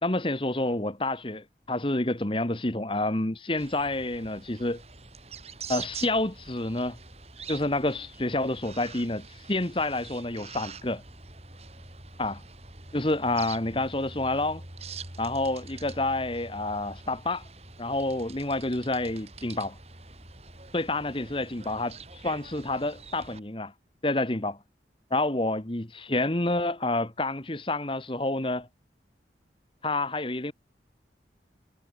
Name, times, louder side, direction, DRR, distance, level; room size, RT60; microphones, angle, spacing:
voice 1, 0.0-4.8 5.7-7.0 7.5-11.0 12.2-12.4 12.9-14.6 15.2-17.5 17.8-19.8 20.7-23.7 24.0-24.6 25.1-28.7 29.8-30.5, left 2 dB, 30° left, 1.5 m, -28 dB
sound 1, 3.6-23.4, right 4 dB, 35° right, 4.9 m, -45 dB
head